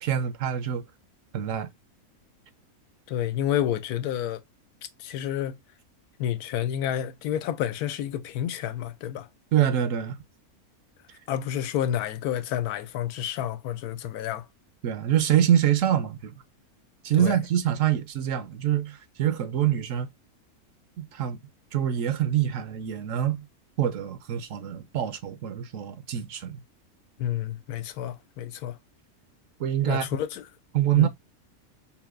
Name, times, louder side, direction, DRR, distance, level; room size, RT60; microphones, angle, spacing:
voice 1, 0.0-0.8 1.3-1.7 9.5-10.2 14.8-16.3 17.0-20.1 21.0-21.4 21.7-23.4 23.8-26.6 29.6-30.1 30.7-31.1, right 10 dB, 70° right, 0.9 m, -25 dB
voice 2, 3.1-4.4 5.0-5.6 6.2-9.3 11.3-14.5 17.2-17.4 27.2-28.8 29.9-30.4 30.9-31.1, left 10 dB, 90° left, 1.1 m, -29 dB
5.6 x 2.2 x 2.3 m
omnidirectional pair, 1.5 m